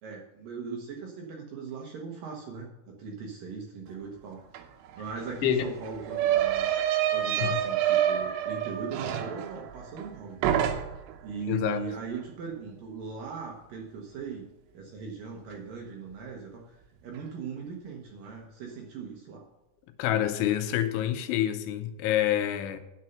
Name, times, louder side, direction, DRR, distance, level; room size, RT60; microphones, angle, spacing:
voice 1, 0.0-4.4 5.0-6.7 7.1-10.7 11.2-16.8 17.0-19.4, right 5 dB, 70° right, 2.2 m, -39 dB
sound 1, 4.5-4.6 4.9-10.1 10.4-11.2, right 11 dB, 90° right, 3.3 m, -28 dB
voice 2, 11.5-11.9 20.0-22.8, left 11 dB, 85° left, 3.3 m, -27 dB
10.5 x 6.6 x 5.7 m
omnidirectional pair, 5.3 m